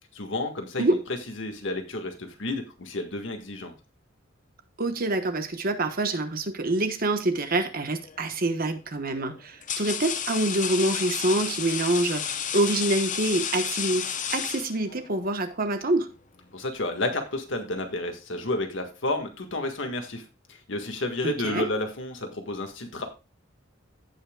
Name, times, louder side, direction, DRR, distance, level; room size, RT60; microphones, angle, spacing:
voice 1, 0.1-1.0 1.4-3.7 16.5-23.0, left 2 dB, 65° left, 1.7 m, -31 dB
voice 2, 4.8-16.1 21.2-21.7, right 2 dB, 45° right, 1.2 m, -26 dB
sound 1, 8.0-8.4 9.2-15.1, left 8 dB, 40° left, 0.7 m, -31 dB
16.0 x 5.7 x 2.3 m
head